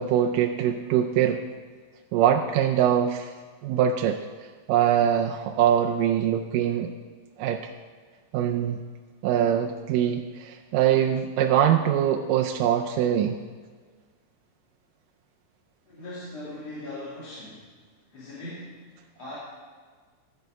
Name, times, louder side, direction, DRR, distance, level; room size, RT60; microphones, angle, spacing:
voice 1, 0.0-1.4 2.1-3.3 3.6-4.2 4.7-6.9 7.4-7.7 8.3-8.8 9.2-13.4, right 9 dB, 80° right, 2 dB, 2.1 m, -23 dB
voice 2, 15.8-17.7 18.1-19.4, left 1 dB, 50° left, -9 dB, 3.3 m, -40 dB
14.0 x 7.9 x 5.0 m, 1.5 s
omnidirectional pair, 4.0 m